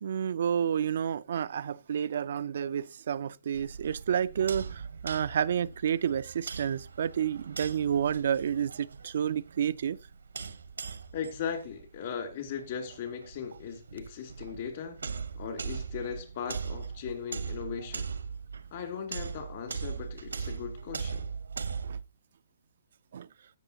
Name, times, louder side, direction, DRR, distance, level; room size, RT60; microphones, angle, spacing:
voice 1, 0.0-10.0 21.8-22.0 23.1-23.3, right 8 dB, 60° right, 0.4 m, -30 dB
sound 1, 3.5-22.0, right 5 dB, 80° right, 0.9 m, -40 dB
voice 2, 11.1-15.0 15.3-18.1 18.7-21.2, left 7 dB, 50° left, 2.6 m, -38 dB
15.5 x 6.1 x 2.8 m
hypercardioid pair, 135°, 0 cm